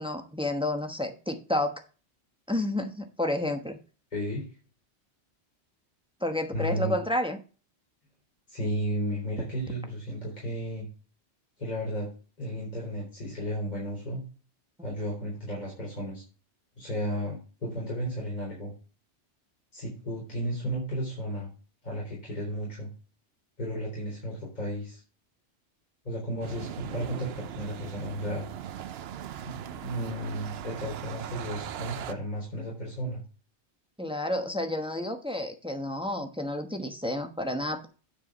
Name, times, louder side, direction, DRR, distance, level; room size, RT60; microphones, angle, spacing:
voice 1, 0.0-1.8 2.5-3.8 6.2-7.4 34.0-37.9, left 1 dB, 5° right, 5 dB, 1.0 m, -30 dB
voice 2, 4.1-4.5 6.5-7.0 8.5-10.9 11.6-12.1 12.4-14.2 14.8-16.2 16.8-18.7 19.7-21.5 21.8-22.9 23.6-25.0 26.0-28.4 29.4-33.2, equal, 40° left, -5 dB, 4.0 m, -33 dB
sound 1, 26.4-32.1, right 10 dB, 70° right, 0.8 m, -39 dB
9.8 x 4.8 x 6.1 m, 0.36 s
omnidirectional pair, 1.1 m